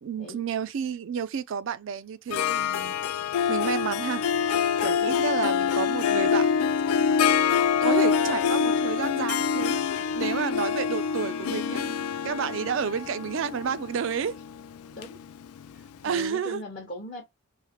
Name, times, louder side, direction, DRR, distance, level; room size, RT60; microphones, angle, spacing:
voice 1, 0.0-3.0 3.5-4.2 4.8-6.5 6.9-7.4 7.7-14.4 16.0-16.6, right 7 dB, 60° right, 0.3 m, -31 dB
Harp, 2.3-15.9, left 7 dB, 85° left, 0.3 m, -26 dB
voice 2, 16.0-17.2, left 1 dB, 45° left, 0.8 m, -39 dB
3.2 x 2.0 x 2.8 m
head